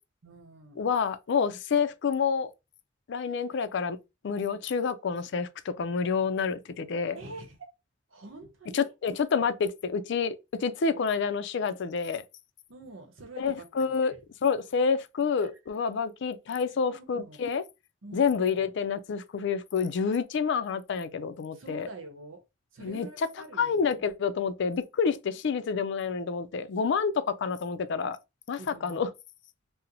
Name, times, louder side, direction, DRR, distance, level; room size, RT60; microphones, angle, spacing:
voice 1, 0.2-0.8 1.5-1.6 3.2-3.4 7.1-7.7 8.1-8.9 12.7-14.2 15.4-15.5 16.9-17.4 18.0-18.4 21.5-22.4 22.7-24.0 28.6-29.1, right 2 dB, 85° right, 0.8 m, -46 dB
voice 2, 0.8-2.5 3.1-4.0 4.2-7.2 8.7-12.2 13.4-14.1 14.4-17.6 18.1-21.9 22.8-23.1 23.6-28.2 28.5-29.1, left 5 dB, 65° left, 0.4 m, -28 dB
2.8 x 2.0 x 3.8 m
head